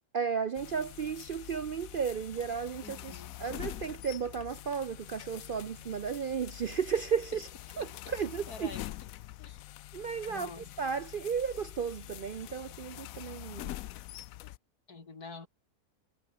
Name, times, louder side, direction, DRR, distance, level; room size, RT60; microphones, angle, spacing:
voice 1, 0.1-7.5 7.8-8.7 9.9-10.5 10.8-13.7, right 6 dB, 55° right, 0.6 m, -34 dB
sound 1, 0.6-14.6, left 15 dB, 70° left, 1.0 m, -45 dB
voice 2, 2.8-3.4 7.7-8.1 8.5-8.9 9.4-9.6 10.3-10.7 14.9-15.5, left 4 dB, 85° left, 3.7 m, -47 dB
omnidirectional pair, 1.6 m